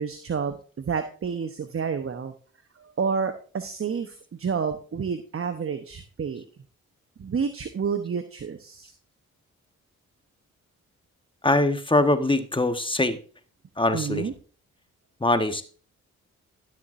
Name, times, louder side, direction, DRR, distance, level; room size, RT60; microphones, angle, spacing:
voice 1, 0.0-2.3 2.8-6.4 7.2-8.9 13.9-14.3, right 6 dB, 40° right, 9 dB, 1.0 m, -29 dB
voice 2, 11.4-13.2 13.8-14.3 15.2-15.6, left 2 dB, 15° left, 9 dB, 1.2 m, -22 dB
12.0 x 7.4 x 2.6 m, 0.40 s
hypercardioid pair, 40°, 34 cm